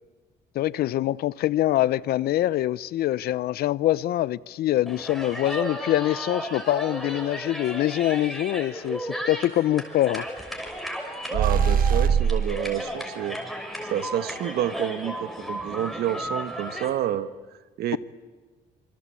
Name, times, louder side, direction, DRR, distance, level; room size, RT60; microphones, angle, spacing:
voice 1, 0.5-10.2, left 14 dB, 65° left, 0.7 m, -24 dB
sound 1, 4.9-16.9, equal, ahead, 6.3 m, -34 dB
sound 2, 11.3-12.6, right 7 dB, 55° right, 1.5 m, -21 dB
voice 2, 11.3-13.4 13.9-17.3 17.8-18.0, right 11 dB, 70° right, 1.4 m, -29 dB
27.5 x 24.0 x 8.5 m
cardioid pair, 110°, 17 cm